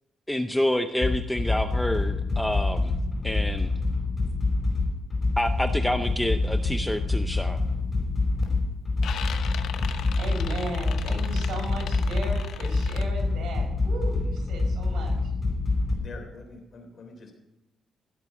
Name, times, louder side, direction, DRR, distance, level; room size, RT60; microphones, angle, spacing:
voice 1, 0.3-2.9 3.2-3.7 5.4-7.6, left 1 dB, 5° left, 8 dB, 0.6 m, -28 dB
sound 1, 1.0-15.9, left 3 dB, 25° left, 4.8 m, -26 dB
sound 2, 7.3-7.6 8.0-8.5 8.8-13.0, left 8 dB, 75° left, 1.0 m, -39 dB
voice 2, 9.8-15.2, right 2 dB, 80° right, 1 dB, 5.2 m, -37 dB
voice 3, 15.9-17.3, left 3 dB, 45° left, 4 dB, 3.6 m, -44 dB
16.0 x 8.0 x 6.0 m, 0.91 s
cardioid pair, 125°, 0 cm